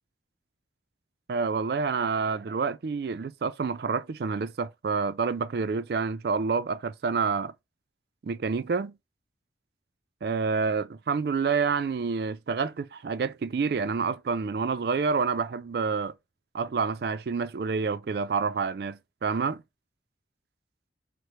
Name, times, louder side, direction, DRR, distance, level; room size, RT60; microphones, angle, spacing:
voice 1, 1.3-7.5 8.2-8.9 10.2-16.1 16.5-19.6, right 5 dB, 60° right, 0.4 m, -28 dB
4.8 x 2.1 x 4.2 m
head